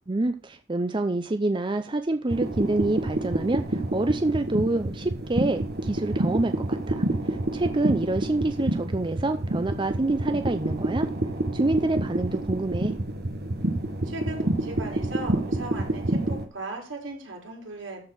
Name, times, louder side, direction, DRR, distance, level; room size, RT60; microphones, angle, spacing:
voice 1, 0.1-7.0 7.5-11.1 11.5-12.9, right 2 dB, 25° right, 8 dB, 0.5 m, -27 dB
sound 1, 2.3-16.4, right 1 dB, 55° right, 1.5 m, -28 dB
voice 2, 14.0-18.0, right 2 dB, 75° right, -1 dB, 4.7 m, -37 dB
13.5 x 4.7 x 6.2 m, 0.38 s
head